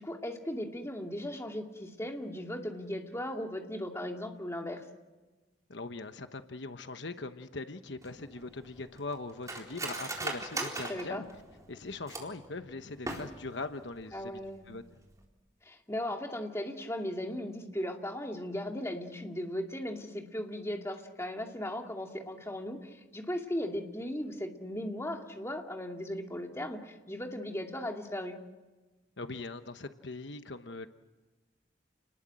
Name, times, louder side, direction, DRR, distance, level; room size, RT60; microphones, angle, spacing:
voice 1, 0.0-4.8 10.5-11.2 14.1-14.7 15.6-28.4, left 1 dB, 15° left, 2 dB, 2.5 m, -37 dB
voice 2, 5.7-11.2 11.7-14.3 14.7-14.8 29.2-30.9, left 3 dB, 70° left, 9 dB, 1.1 m, -41 dB
Cutlery silverware, 8.0-12.5 12.9-13.6 13.9-14.0 14.4-14.7 15.1-15.2, right 2 dB, 20° right, 4.0 m, -39 dB
29.5 x 20.0 x 7.7 m, 1.2 s
head